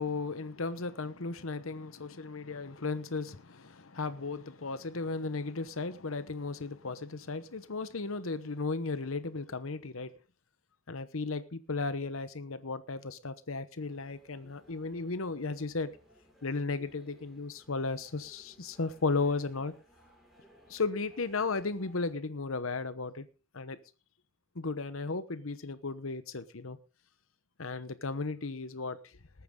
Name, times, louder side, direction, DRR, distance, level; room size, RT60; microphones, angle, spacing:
voice 1, 0.0-10.1 10.9-15.9 16.4-19.7 20.7-23.3 23.5-23.8 24.6-26.8 27.6-29.0, left 3 dB, 80° left, 13 dB, 1.0 m, -35 dB
sound 1, 13.8-22.1, equal, ahead, 5.5 m, -62 dB
20.0 x 9.3 x 3.7 m, 0.32 s
head